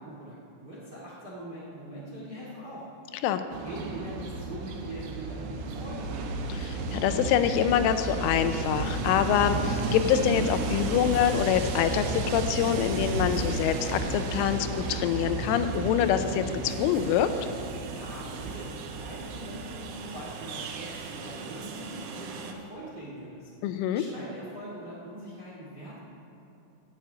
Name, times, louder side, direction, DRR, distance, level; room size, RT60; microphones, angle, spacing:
voice 1, 0.0-2.8 3.6-6.1 17.9-23.5 23.9-26.0, right 1 dB, 40° right, -5 dB, 1.5 m, -42 dB
Train, 3.5-22.5, right 3 dB, 90° right, 3.6 m, -33 dB
voice 2, 6.5-17.3 23.6-24.0, left 10 dB, 85° left, 9 dB, 3.2 m, -25 dB
12.5 x 8.7 x 8.5 m, 2.8 s
omnidirectional pair, 5.6 m